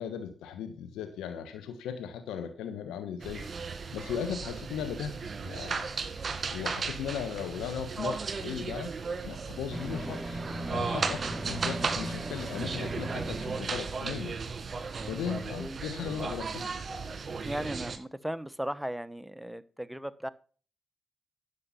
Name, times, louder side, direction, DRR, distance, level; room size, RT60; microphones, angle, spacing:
voice 1, 0.0-3.4 3.9-6.0 6.5-8.9 9.2-10.4 10.7-14.4 15.1-16.6, left 8 dB, 85° left, 7 dB, 1.2 m, -37 dB
sound 1, 3.2-18.0, right 4 dB, 50° right, 1.9 m, -36 dB
sound 2, 9.7-14.7 15.0-15.1, right 1 dB, 25° right, 4.1 m, -38 dB
voice 2, 17.4-20.3, equal, 5° right, 15 dB, 1.0 m, -36 dB
11.0 x 7.1 x 5.6 m, 0.40 s
supercardioid pair, 50°, 0 cm